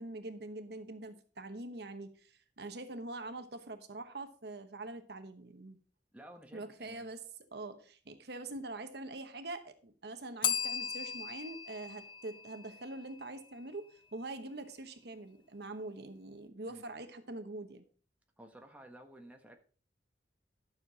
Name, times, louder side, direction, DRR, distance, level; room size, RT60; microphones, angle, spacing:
voice 1, 0.0-5.8 6.5-7.2 7.5-17.8, right 2 dB, 65° right, 8 dB, 1.1 m, -44 dB
voice 2, 6.1-7.1 11.9-12.0 16.7-16.8 18.4-19.6, right 1 dB, 10° right, 3 dB, 1.3 m, -53 dB
Bell, 10.4-13.2, left 8 dB, 30° left, 0.4 m, -37 dB
12.0 x 6.8 x 4.1 m, 0.41 s
head